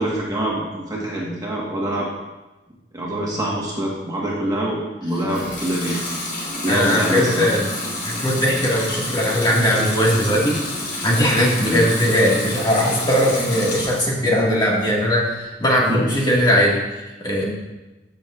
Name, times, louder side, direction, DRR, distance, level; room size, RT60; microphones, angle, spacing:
voice 1, 0.0-2.1 2.9-6.0 6.6-7.5 11.6-11.8 15.9-16.0, right 1 dB, 20° right, -4 dB, 1.5 m, -24 dB
Water tap faucet / Sink (filling or washing) / Liquid, 5.2-14.2 14.6-15.3, left 1 dB, 90° left, 3.0 m, -29 dB
voice 2, 6.7-7.7 8.0-10.7 11.0-17.5, equal, 25° left, -4 dB, 1.9 m, -19 dB
14.0 x 6.4 x 2.5 m, 1.1 s
head